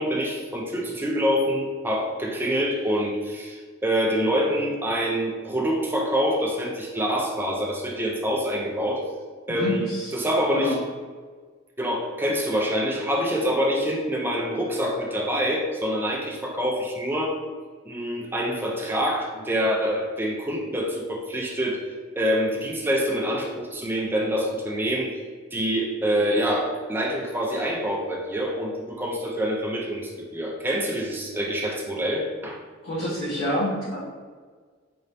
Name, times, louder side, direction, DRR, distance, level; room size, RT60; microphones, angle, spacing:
voice 1, 0.0-9.0 9.5-9.9 10.1-10.8 11.8-17.4 17.8-21.8 22.2-25.1 25.5-32.6, equal, 10° right, -1 dB, 0.5 m, -26 dB
voice 2, 9.6-10.1 10.5-10.8 32.8-34.0, left 1 dB, 80° left, -12 dB, 1.2 m, -27 dB
3.8 x 2.7 x 3.3 m, 1.5 s
head